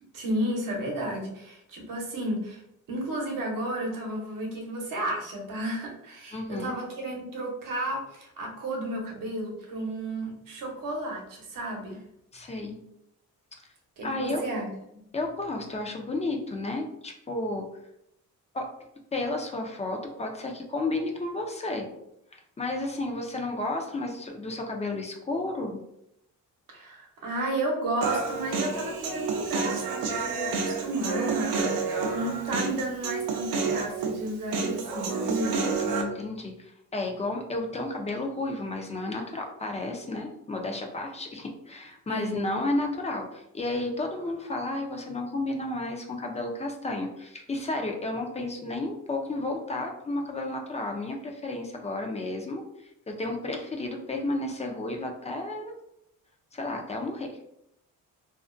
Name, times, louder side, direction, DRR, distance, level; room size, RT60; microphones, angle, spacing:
voice 1, 0.1-2.6 2.9-12.0 14.0-15.0 26.7-35.6 42.1-42.6, right 1 dB, 65° right, 0 dB, 0.9 m, -32 dB
voice 2, 6.3-6.7 12.3-12.8 14.0-14.6 15.1-17.7 18.5-18.7 19.1-21.9 22.3-25.8 35.8-55.7 56.5-57.4, left 2 dB, 20° left, 3 dB, 0.4 m, -32 dB
Human voice, 28.0-36.0, right 4 dB, 90° right, 0.5 m, -29 dB
2.4 x 2.1 x 2.4 m, 0.79 s
cardioid pair, 95°, 35 cm